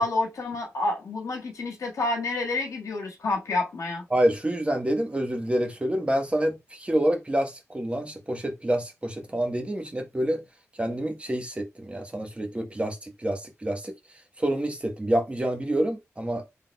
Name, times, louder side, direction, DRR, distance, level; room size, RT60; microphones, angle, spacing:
voice 1, 0.0-4.0, left 2 dB, 85° left, 1.7 m, -28 dB
voice 2, 4.1-10.4 10.8-13.9 14.4-16.4, right 1 dB, 20° right, 1.1 m, -27 dB
3.9 x 3.5 x 2.2 m
cardioid pair, 75°, 6 cm